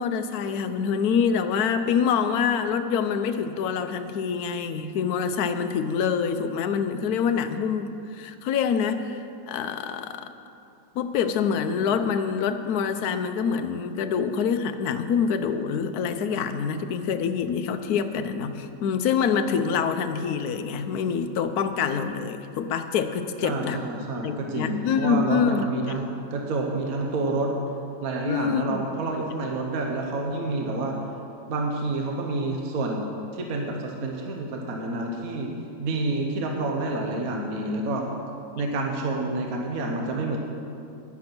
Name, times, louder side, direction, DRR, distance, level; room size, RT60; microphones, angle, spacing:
voice 1, 0.0-10.2 10.9-23.8 24.2-25.6 28.2-28.9, left 6 dB, 65° left, 8 dB, 1.1 m, -26 dB
voice 2, 23.4-27.5 28.0-31.0 31.5-35.5 35.8-38.1 38.6-40.4, right 2 dB, 55° right, 1 dB, 1.4 m, -28 dB
10.5 x 10.5 x 6.0 m, 2.6 s
omnidirectional pair, 1.9 m